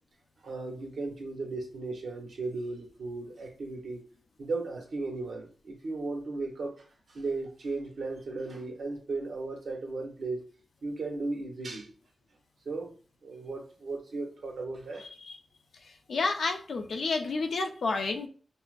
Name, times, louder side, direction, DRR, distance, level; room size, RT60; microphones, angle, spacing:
voice 1, 0.4-4.0 4.4-6.7 7.1-10.4 10.8-11.9 12.6-12.9 13.2-15.1, right 3 dB, 75° right, 2 dB, 0.9 m, -36 dB
voice 2, 16.1-18.3, left 3 dB, 75° left, 5 dB, 0.5 m, -30 dB
5.4 x 2.1 x 2.4 m, 0.41 s
cardioid pair, 50°, 0 cm